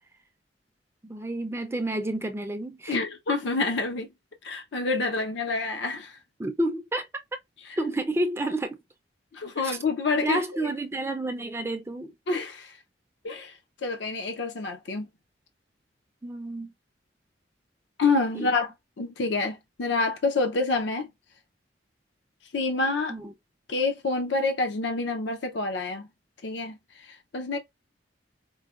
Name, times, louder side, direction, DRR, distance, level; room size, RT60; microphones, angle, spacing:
voice 1, 1.0-3.0 6.4-7.1 7.8-8.8 9.6-9.8 10.2-12.1 16.2-16.7 18.3-18.5 23.1-23.3, right 1 dB, 15° right, 0.4 m, -30 dB
voice 2, 2.9-4.1 4.4-6.2 9.3-10.7 12.3-12.8 13.2-15.1 18.0-18.7 19.0-21.1 22.5-23.1 23.7-26.1 26.4-27.6, left 3 dB, 80° left, 0.6 m, -28 dB
4.7 x 2.1 x 2.3 m
head